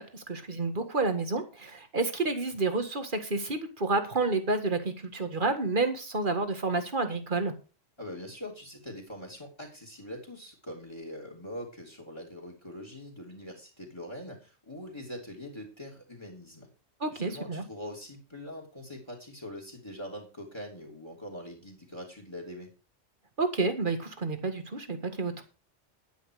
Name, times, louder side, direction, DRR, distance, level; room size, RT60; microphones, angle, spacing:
voice 1, 0.0-7.5 17.0-17.6 23.4-25.4, right 3 dB, 45° right, 7 dB, 1.9 m, -30 dB
voice 2, 8.0-16.7 17.1-22.7, left 1 dB, 20° left, 1 dB, 3.4 m, -43 dB
11.0 x 9.8 x 4.8 m, 0.32 s
omnidirectional pair, 1.2 m